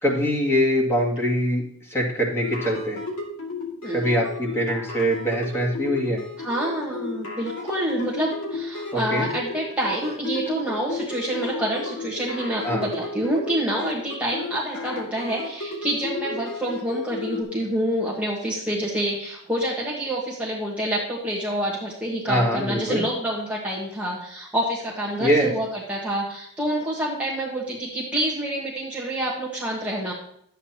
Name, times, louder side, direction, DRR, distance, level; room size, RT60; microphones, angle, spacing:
voice 1, 0.0-3.0 3.9-6.2 8.9-9.3 12.6-12.8 22.3-23.0 25.2-25.5, equal, 10° left, -3 dB, 2.1 m, -23 dB
sound 1, 2.4-17.4, left 3 dB, 70° left, 2.3 m, -33 dB
voice 2, 6.4-30.1, right 1 dB, 5° right, -5 dB, 1.4 m, -27 dB
11.5 x 8.3 x 2.9 m, 0.70 s
head